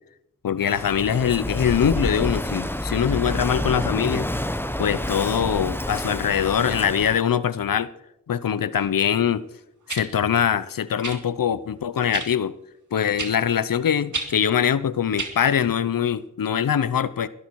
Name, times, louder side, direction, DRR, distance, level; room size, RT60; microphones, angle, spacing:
voice 1, 0.4-4.3 4.8-7.9 8.3-9.4 9.9-12.5 12.9-17.3, left 8 dB, 80° left, 17 dB, 0.7 m, -23 dB
Walk footsteps / Wind / Waves surf, 0.6-7.2, left 1 dB, 5° left, 1.2 m, -28 dB
sound 1, 8.8-8.9 9.9-10.1 11.0-11.2 12.1-12.3 13.2-13.4 14.1-14.3 15.2-15.3 16.3-16.4, right 3 dB, 60° right, 2.3 m, -30 dB
21.0 x 13.0 x 4.7 m, 0.84 s
cardioid pair, 45°, 33 cm